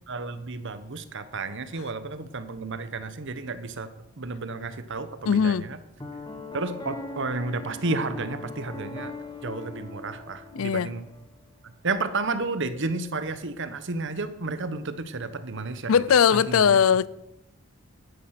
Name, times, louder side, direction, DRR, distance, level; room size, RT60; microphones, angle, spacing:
voice 1, 0.1-3.9 4.2-5.8 6.5-9.1 9.4-11.1 11.6-16.0 16.3-16.8, right 3 dB, 55° right, 1.1 m, -32 dB
voice 2, 5.3-5.7 10.5-10.9 15.9-17.1, left 7 dB, 70° left, 0.4 m, -20 dB
Piano, 6.0-11.3, left 2 dB, 20° left, 1.7 m, -40 dB
12.5 x 10.5 x 5.9 m
head